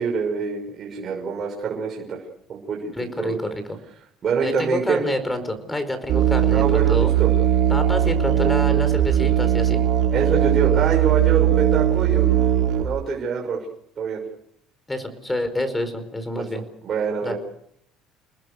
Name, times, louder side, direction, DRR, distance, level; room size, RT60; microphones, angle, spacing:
voice 1, 0.0-2.2 2.5-2.9 3.2-3.4 4.2-5.0 6.5-7.3 10.1-13.6 14.0-14.2 16.3-16.4 16.8-17.4, right 5 dB, 35° right, -1 dB, 6.1 m, -25 dB
voice 2, 3.0-3.8 4.4-7.1 7.7-9.8 14.9-16.6 17.2-17.3, left 1 dB, 10° left, 10 dB, 4.9 m, -27 dB
Musical instrument, 6.1-12.8, right 12 dB, 60° right, 4.5 m, -19 dB
29.5 x 20.5 x 6.6 m, 0.71 s
cardioid pair, 140°, 0 cm